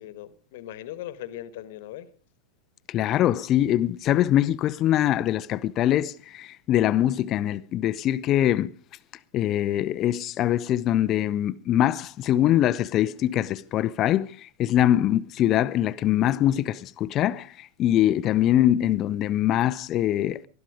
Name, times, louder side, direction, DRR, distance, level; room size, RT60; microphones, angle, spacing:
voice 1, 0.0-2.1, left 13 dB, 50° left, 1.4 m, -39 dB
voice 2, 2.9-8.7 9.3-20.4, left 12 dB, 35° left, 0.7 m, -23 dB
20.0 x 13.0 x 5.0 m
figure-of-eight pair, 90°, 0 cm